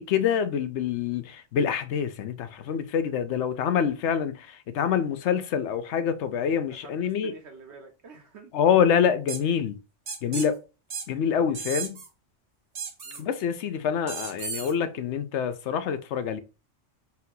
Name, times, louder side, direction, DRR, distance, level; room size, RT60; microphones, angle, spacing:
voice 1, 0.0-7.3 8.5-9.8 10.2-10.6 11.1-12.0 13.2-16.4, left 8 dB, 70° left, 0.9 m, -26 dB
voice 2, 6.7-8.7 10.2-10.4 13.0-13.3, right 4 dB, 65° right, 1.1 m, -48 dB
sound 1, 9.3-9.4 10.1-10.5 10.9-11.1 11.5-12.1 12.7-13.2 14.1-14.7, right 5 dB, 40° right, 0.7 m, -34 dB
4.3 x 2.7 x 3.8 m
omnidirectional pair, 1.3 m